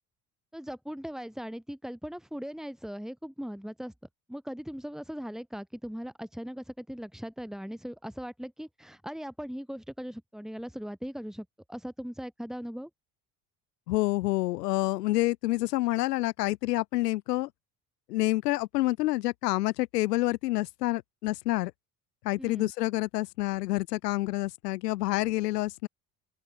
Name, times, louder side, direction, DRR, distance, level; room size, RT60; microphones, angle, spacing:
voice 1, 0.5-3.9 4.3-12.9 22.4-22.7, equal, ahead, 7.5 m, -39 dB
voice 2, 13.9-17.5 18.1-21.7 22.2-25.9, left 18 dB, 80° left, 2.0 m, -28 dB
open air
hypercardioid pair, 60°, 48 cm